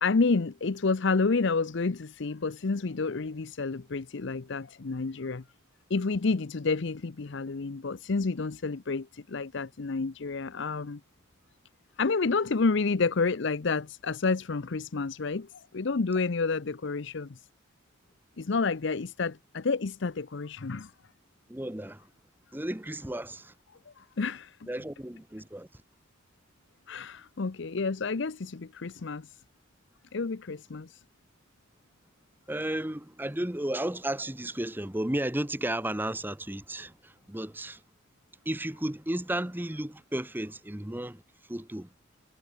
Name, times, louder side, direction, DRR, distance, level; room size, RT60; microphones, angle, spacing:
voice 1, 0.0-5.4 5.9-11.0 12.0-17.4 18.4-20.9 24.2-24.6 26.9-29.3 30.1-31.0, left 4 dB, 60° left, 0.6 m, -29 dB
voice 2, 21.5-22.0 22.5-23.5 24.7-25.7 32.5-37.8 38.4-41.2 41.5-41.9, right 1 dB, 10° right, 1.0 m, -33 dB
head